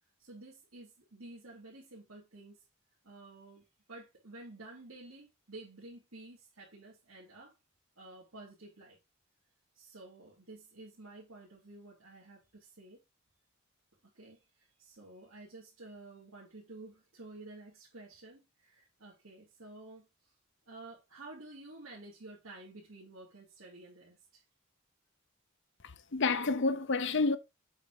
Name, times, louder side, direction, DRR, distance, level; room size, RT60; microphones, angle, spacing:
voice 1, 0.2-2.6 3.0-7.5 8.0-9.0 9.7-13.0 14.0-20.3 20.6-24.4, right 2 dB, 85° right, 2.9 m, -51 dB
voice 2, 25.8-27.4, left 3 dB, 60° left, 0.8 m, -29 dB
7.8 x 4.3 x 5.0 m
head